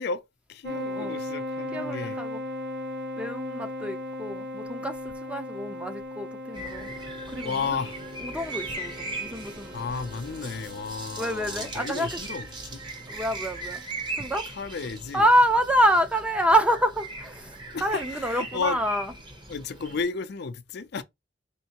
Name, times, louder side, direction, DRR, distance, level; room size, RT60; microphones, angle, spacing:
voice 1, 0.0-2.2 7.4-8.0 9.7-12.8 14.5-15.3 17.7-18.8 19.5-21.0, left 5 dB, 60° left, 0.5 m, -33 dB
sound 1, 0.6-13.8, left 1 dB, 65° right, 0.8 m, -38 dB
voice 2, 0.7-1.2 1.7-2.4 3.2-6.9 7.3-7.8 8.2-9.7 11.2-12.2 13.1-13.8 14.1-14.5 15.1-19.1, equal, 5° right, 0.5 m, -27 dB
sound 2, 6.5-20.0, right 2 dB, 25° right, 0.9 m, -39 dB
4.4 x 3.1 x 2.9 m
head